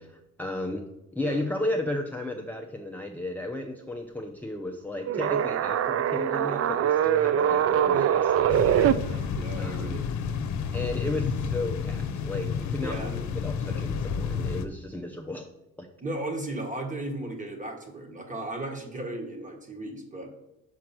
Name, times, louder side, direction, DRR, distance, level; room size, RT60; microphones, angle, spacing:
voice 1, 0.0-9.1 9.6-10.0 10.7-15.5 15.8-15.9, left 2 dB, 5° left, 2 dB, 0.6 m, -34 dB
sound 1, 5.1-8.9, right 10 dB, 50° right, 0.4 m, -23 dB
sound 2, 8.5-14.7, left 6 dB, 70° left, 0.8 m, -31 dB
voice 2, 9.3-10.0 12.8-13.2 16.0-20.3, right 1 dB, 25° right, 4 dB, 1.7 m, -35 dB
6.1 x 4.6 x 5.9 m, 0.93 s
cardioid pair, 90°, 30 cm